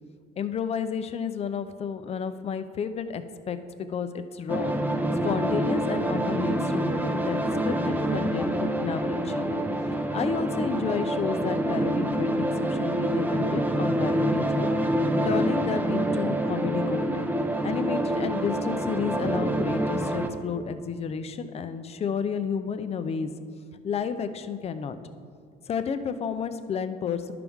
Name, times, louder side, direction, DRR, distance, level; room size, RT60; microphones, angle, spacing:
voice 1, 0.4-4.7 5.2-9.5 10.1-14.8 15.2-17.1 17.6-23.3 23.8-25.0 25.7-27.3, left 6 dB, 40° left, 10 dB, 0.5 m, -31 dB
sound 1, 4.5-20.3, right 1 dB, 10° right, 0.6 m, -26 dB
11.0 x 5.8 x 3.6 m, 2.2 s
cardioid pair, 110°, 17 cm